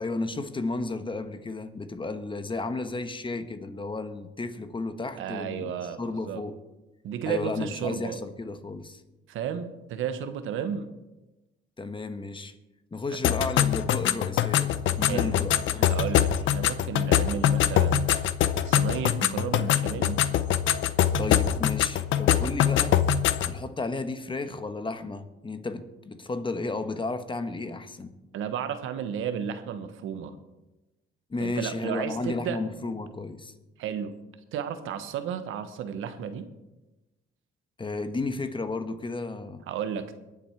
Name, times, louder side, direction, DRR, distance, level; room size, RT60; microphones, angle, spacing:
voice 1, 0.0-5.7 6.0-6.6 7.2-9.0 11.8-12.5 12.9-15.9 21.2-23.0 23.5-28.1 31.3-33.5 37.8-39.6, left 3 dB, 25° left, 10 dB, 1.2 m, -33 dB
voice 2, 5.2-6.0 6.2-6.4 7.0-8.2 9.3-10.9 15.0-15.4 15.8-18.0 18.7-20.2 28.3-30.4 31.4-32.6 33.8-34.2 34.5-36.5 39.7-40.2, right 8 dB, 85° right, 10 dB, 1.1 m, -33 dB
sound 1, 13.2-23.6, left 10 dB, 75° left, 0.7 m, -24 dB
22.5 x 7.7 x 4.5 m, 1.0 s
cardioid pair, 90°, 20 cm